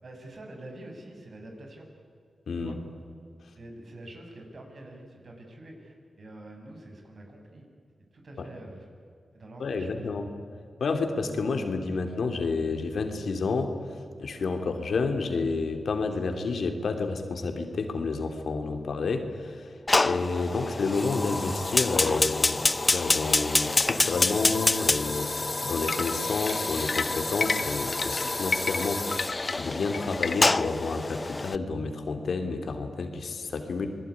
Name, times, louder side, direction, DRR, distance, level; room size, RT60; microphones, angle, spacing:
voice 1, 0.0-1.9 2.5-2.8 3.6-7.6 8.1-8.8 9.3-10.1, right 1 dB, 60° right, 2 dB, 7.0 m, -46 dB
voice 2, 2.5-2.8 8.4-8.5 9.6-10.2 10.8-13.8 14.2-19.7 20.0-22.6 22.9-29.1 29.6-33.9, left 4 dB, 80° left, 6 dB, 2.8 m, -30 dB
Fire, 19.9-31.6, left 2 dB, 30° left, 0.8 m, -27 dB
sound 1, 25.9-30.7, left 4 dB, 55° left, 1.3 m, -31 dB
27.5 x 20.5 x 9.8 m, 2.4 s
cardioid pair, 65°, 0 cm